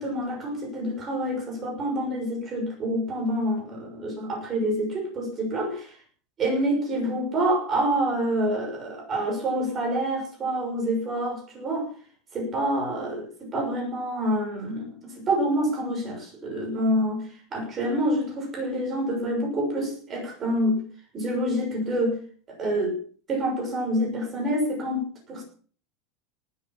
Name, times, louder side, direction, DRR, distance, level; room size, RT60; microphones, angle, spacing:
voice 1, 0.0-6.0 6.4-11.9 12.3-20.8 21.1-22.2 22.5-22.9 23.3-25.4, right 1 dB, 20° right, 1 dB, 6.3 m, -27 dB
18.5 x 8.6 x 7.3 m, 0.44 s
supercardioid pair, 170°, 0 cm